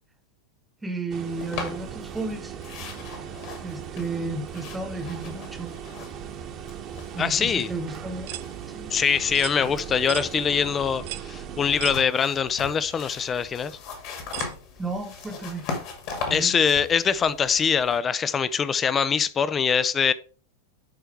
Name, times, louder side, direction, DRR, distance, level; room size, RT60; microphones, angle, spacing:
voice 1, 0.8-2.5 3.6-5.7 7.1-8.4 8.7-8.9 14.8-15.7 16.3-16.6, right 3 dB, 10° right, 1.2 m, -33 dB
sound 1, 1.1-12.0, right 8 dB, 35° right, 1.2 m, -38 dB
sound 2, 1.4-2.3 2.6-6.4 6.6-8.0 8.3-10.5 11.7-18.0, left 4 dB, 45° left, 2.1 m, -39 dB
voice 2, 7.2-7.7 8.9-13.8 16.3-20.1, left 7 dB, 20° left, 0.5 m, -23 dB
sound 3, 8.3-8.5 9.3-9.6 10.1-10.3 11.1-11.3 11.8-12.0 12.8-12.9 14.3-14.5, right 17 dB, 50° right, 0.4 m, -35 dB
11.5 x 4.5 x 3.4 m
figure-of-eight pair, 90°, 0 cm